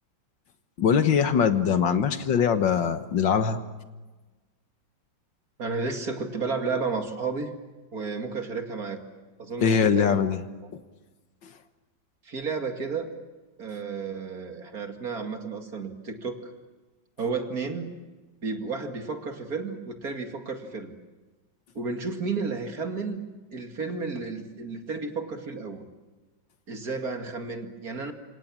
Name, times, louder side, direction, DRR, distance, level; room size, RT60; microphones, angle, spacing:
voice 1, 0.8-3.6 9.6-10.4, left 7 dB, 75° left, 10 dB, 2.1 m, -22 dB
voice 2, 5.6-7.5 7.9-9.0 9.4-10.2 12.2-13.1 13.6-16.4 17.2-18.0 18.4-20.9 21.7-23.2 23.5-25.9 26.7-28.1, right 4 dB, 50° right, 5 dB, 2.7 m, -32 dB
28.0 x 26.5 x 7.5 m, 1.2 s
omnidirectional pair, 2.1 m